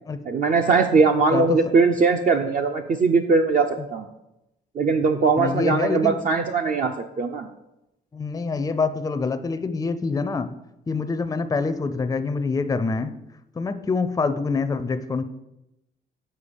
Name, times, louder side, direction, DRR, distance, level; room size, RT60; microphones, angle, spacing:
voice 1, 0.3-4.1 4.8-7.5, right 4 dB, 45° right, 4 dB, 0.5 m, -20 dB
voice 2, 5.4-6.2 8.1-10.5 10.9-13.1 13.6-15.2, left 4 dB, 15° left, 11 dB, 0.4 m, -25 dB
7.0 x 4.4 x 5.1 m, 0.90 s
cardioid pair, 90°, 20 cm